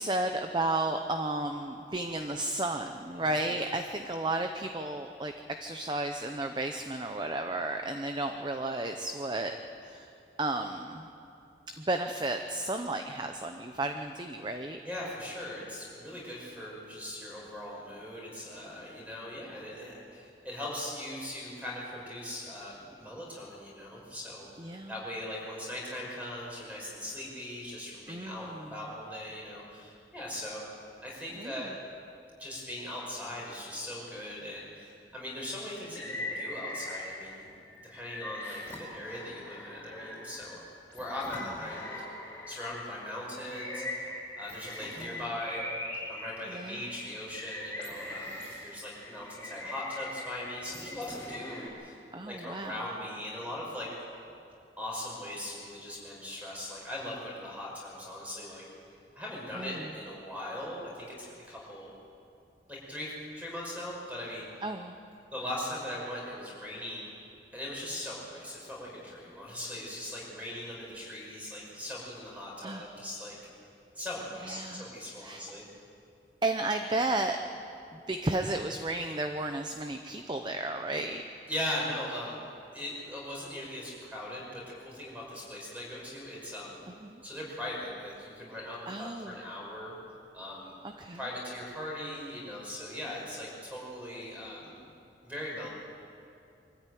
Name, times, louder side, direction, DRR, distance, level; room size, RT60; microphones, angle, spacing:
voice 1, 0.0-5.3 5.6-9.5 9.8-10.1 10.4-11.1 11.8-14.8 24.6-24.9 28.1-28.7 31.4-31.5 45.0-45.1 46.5-46.9 52.1-52.7 59.6-59.8 64.6-65.0 72.6-72.9 74.4-74.9 75.2-75.4 76.4-77.4 77.9-81.2 87.0-87.2 88.9-89.3 91.0-91.2, right 2 dB, 25° right, 6 dB, 0.7 m, -33 dB
voice 2, 3.2-3.5 14.8-30.6 31.0-31.7 32.4-37.5 37.9-40.6 40.9-42.0 42.5-44.1 44.4-45.6 46.1-52.0 52.3-53.9 54.8-58.6 59.2-61.9 62.7-64.5 65.3-67.1 67.5-73.4 73.9-75.6 81.5-82.3 82.7-86.8 87.2-90.0 90.3-94.7 95.2-95.7, left 1 dB, 10° right, -3 dB, 5.7 m, -40 dB
sound 1, 35.8-37.4 37.7-42.8 43.3-51.7, left 1 dB, 10° left, 5.3 m, -41 dB
24.5 x 14.0 x 9.3 m, 2.6 s
head